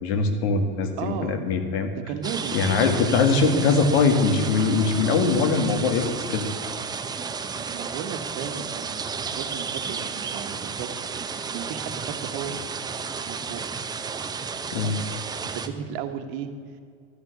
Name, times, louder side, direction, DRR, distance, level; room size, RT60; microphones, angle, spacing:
voice 1, 0.0-1.9 2.5-6.5 14.7-15.0, left 4 dB, 90° left, 7 dB, 1.9 m, -22 dB
voice 2, 1.0-1.4 2.1-2.6 2.9-3.0 7.3-12.6 13.2-13.6 15.5-16.5, right 8 dB, 65° right, 8 dB, 1.3 m, -35 dB
sound 1, 2.2-15.7, right 5 dB, 15° right, 0.5 m, -32 dB
12.5 x 6.7 x 9.3 m, 2.3 s
supercardioid pair, 145°, 31 cm